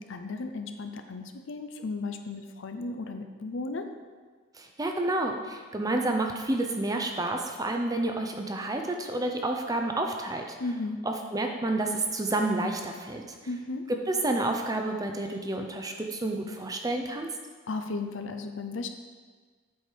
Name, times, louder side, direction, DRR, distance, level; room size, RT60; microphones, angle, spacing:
voice 1, 0.0-3.9 10.6-11.0 13.5-13.8 17.7-18.9, left 3 dB, 65° left, 7 dB, 0.6 m, -35 dB
voice 2, 4.6-10.6 11.1-13.2 14.1-17.3, right 2 dB, 15° right, 3 dB, 0.5 m, -29 dB
7.8 x 5.0 x 4.6 m, 1.5 s
head